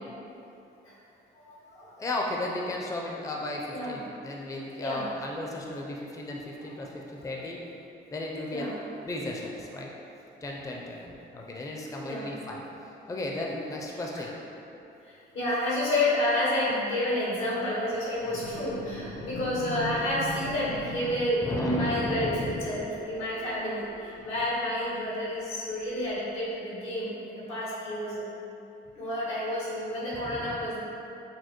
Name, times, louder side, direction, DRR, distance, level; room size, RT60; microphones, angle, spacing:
voice 1, 1.3-1.9 3.7-4.0 4.8-5.0 8.5-8.8 12.0-12.3 15.0-28.2 28.9-30.8, left 1 dB, 90° left, -8 dB, 1.4 m, -30 dB
voice 2, 2.0-7.6 8.1-8.7 9.1-9.9 10.4-12.6 13.1-14.4 21.4-22.7 30.1-30.6, left 1 dB, 15° left, -1 dB, 0.4 m, -34 dB
sound 1, 18.0-25.4 26.0-26.1, left 1 dB, 60° left, 0.8 m, -41 dB
6.3 x 2.2 x 2.9 m, 2.9 s
cardioid pair, 90°, 20 cm